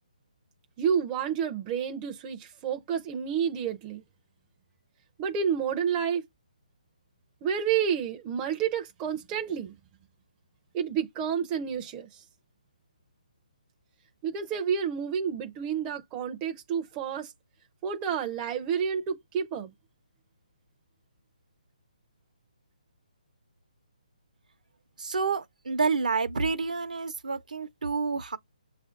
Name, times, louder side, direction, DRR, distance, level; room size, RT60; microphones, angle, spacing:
voice 1, 0.8-4.0 5.2-6.3 7.4-9.7 10.7-12.1 14.2-17.3 17.8-19.7, right 7 dB, 20° right, 0.5 m, -29 dB
voice 2, 25.0-28.4, right 4 dB, 75° right, 0.7 m, -29 dB
6.7 x 2.5 x 2.4 m
figure-of-eight pair, 150°, 4 cm